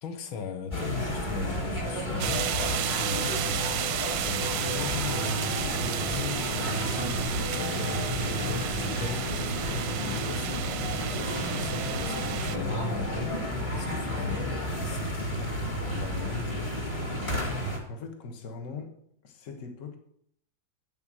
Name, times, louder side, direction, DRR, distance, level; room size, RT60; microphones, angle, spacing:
voice 1, 0.0-2.5 2.8-3.9 4.2-7.3 7.5-15.6 15.9-17.6, left 6 dB, 75° left, 8 dB, 1.8 m, -38 dB
sound 1, 0.7-17.8, equal, 15° left, 1.7 m, -31 dB
sound 2, 2.2-12.6, right 11 dB, 90° right, 1.5 m, -33 dB
voice 2, 17.9-19.0 19.2-20.0, left 4 dB, 40° left, 3 dB, 1.5 m, -40 dB
8.1 x 7.2 x 6.3 m, 0.70 s
omnidirectional pair, 2.3 m